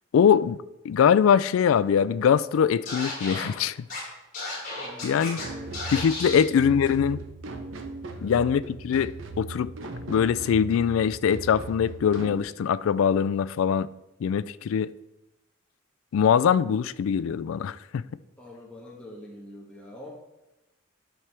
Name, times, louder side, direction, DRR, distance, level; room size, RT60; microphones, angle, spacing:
voice 1, 0.1-0.6 0.8-3.8 5.0-5.4 5.9-7.2 8.2-9.7 10.1-13.9 14.2-14.9 16.1-18.0, left 7 dB, 80° left, 0.3 m, -22 dB
Scratching (performance technique), 2.8-3.4 3.9-4.0 4.3-5.4 5.7-6.4, left 2 dB, 40° left, 3.0 m, -33 dB
voice 2, 4.8-5.8 6.2-6.8 8.1-8.3 18.4-20.1, left 1 dB, 5° left, 1.2 m, -44 dB
sound 1, 5.4-12.4, right 3 dB, 70° right, 0.7 m, -38 dB
10.0 x 6.1 x 3.3 m
head